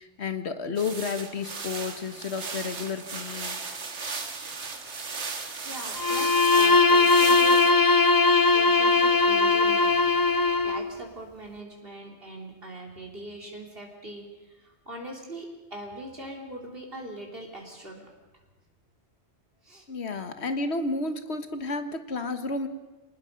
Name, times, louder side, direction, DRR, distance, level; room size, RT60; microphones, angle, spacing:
voice 1, 0.0-3.6 19.9-22.7, left 4 dB, 70° left, 9 dB, 1.6 m, -31 dB
sound 1, 0.8-7.7, right 4 dB, 85° right, 1.9 m, -36 dB
voice 2, 4.7-5.2 5.7-7.9 8.5-10.1 10.6-18.1 19.6-19.9, right 1 dB, 55° right, 0 dB, 3.3 m, -41 dB
Bowed string instrument, 6.0-10.9, left 4 dB, 20° left, 0.8 m, -20 dB
26.0 x 19.5 x 5.3 m, 1.2 s
omnidirectional pair, 1.1 m